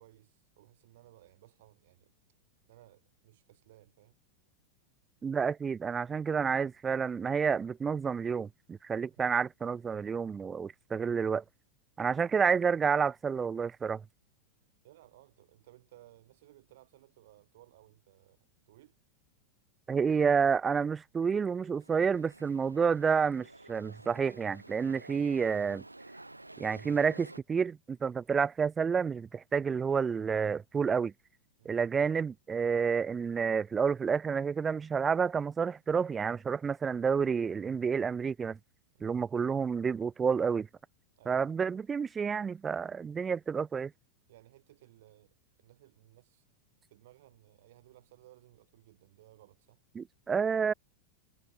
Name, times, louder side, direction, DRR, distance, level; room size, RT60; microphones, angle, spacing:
voice 1, 0.0-2.1 2.7-4.2 9.2-9.3 14.8-19.0 31.6-31.8 38.9-39.1 41.2-41.4 44.3-46.4 46.9-49.8, right 15 dB, 55° right, 3.0 m, -60 dB
voice 2, 5.2-11.4 12.0-14.0 19.9-25.8 26.6-31.1 31.7-38.6 39.0-40.7 41.3-43.9 49.9-50.7, right 6 dB, 20° right, 0.4 m, -29 dB
sound 1, 21.3-27.4, right 2 dB, 85° right, 3.4 m, -51 dB
figure-of-eight pair, 90°, 0 cm